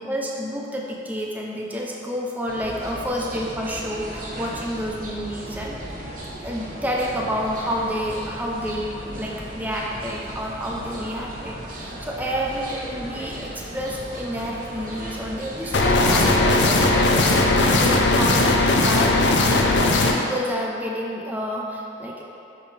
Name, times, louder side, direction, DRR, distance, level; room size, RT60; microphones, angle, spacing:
voice 1, 0.0-5.9 6.4-19.2 20.1-22.2, equal, 10° right, -2 dB, 0.5 m, -29 dB
sound 1, 2.5-16.3, right 1 dB, 45° right, 1.0 m, -36 dB
sound 2, 15.7-20.1, left 2 dB, 70° left, 0.6 m, -18 dB
7.4 x 5.2 x 3.3 m, 2.7 s
head